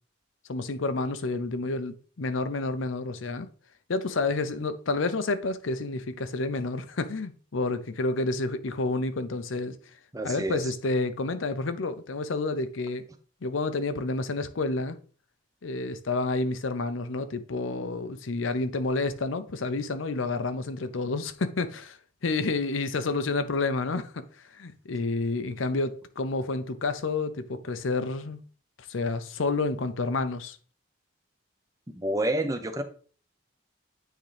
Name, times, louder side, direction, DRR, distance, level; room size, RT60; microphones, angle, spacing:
voice 1, 0.5-3.5 3.9-9.8 10.2-13.1 13.4-15.0 15.6-22.0 22.2-24.2 24.5-28.4 28.9-30.6, left 3 dB, 80° left, 0.6 m, -29 dB
voice 2, 10.1-10.6 31.9-32.8, right 1 dB, 15° right, 0.7 m, -28 dB
9.2 x 3.7 x 3.4 m
head